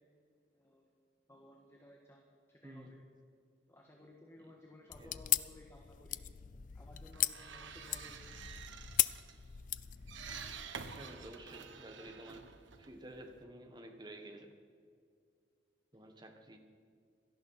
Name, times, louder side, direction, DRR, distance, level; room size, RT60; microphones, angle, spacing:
voice 1, 0.5-0.8 1.3-2.3 2.6-3.0 3.7-6.2 6.7-8.4, left 1 dB, 15° left, 0 dB, 1.6 m, -57 dB
voice 2, 2.6-2.9 5.0-5.2 11.0-12.5 12.8-14.6 15.9-16.6, right 1 dB, 25° right, 4 dB, 1.5 m, -51 dB
sound 1, 4.9-10.6, left 14 dB, 45° left, 0.4 m, -37 dB
sound 2, 6.9-13.4, right 5 dB, 90° right, 1.3 m, -50 dB
17.5 x 13.0 x 5.8 m, 2.3 s
head